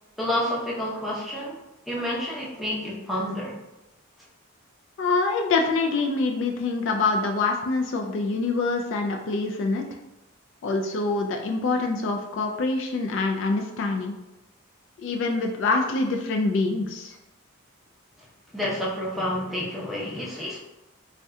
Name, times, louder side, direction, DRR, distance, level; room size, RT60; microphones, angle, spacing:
voice 1, 0.2-1.6 1.9-3.5 18.5-20.6, left 1 dB, ahead, -6 dB, 0.6 m, -29 dB
voice 2, 5.0-9.8 10.6-14.2 15.0-17.2, left 3 dB, 60° left, 3 dB, 0.3 m, -25 dB
2.7 x 2.1 x 3.5 m, 0.96 s
head